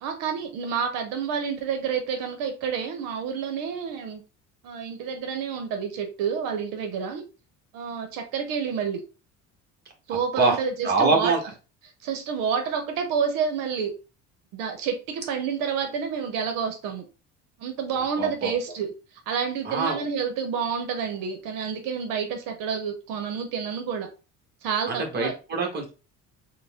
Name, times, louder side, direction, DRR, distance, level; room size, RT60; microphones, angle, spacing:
voice 1, 0.0-4.2 4.6-7.2 7.7-9.0 10.1-11.3 12.0-13.9 14.5-17.1 17.6-18.9 19.3-24.1 24.6-25.3, right 6 dB, 80° right, 6 dB, 0.8 m, -29 dB
voice 2, 10.8-11.4 18.2-18.5 19.6-20.0 24.9-25.9, right 3 dB, 30° right, 1 dB, 1.2 m, -24 dB
3.9 x 2.1 x 3.4 m, 0.32 s
cardioid pair, 110°, 33 cm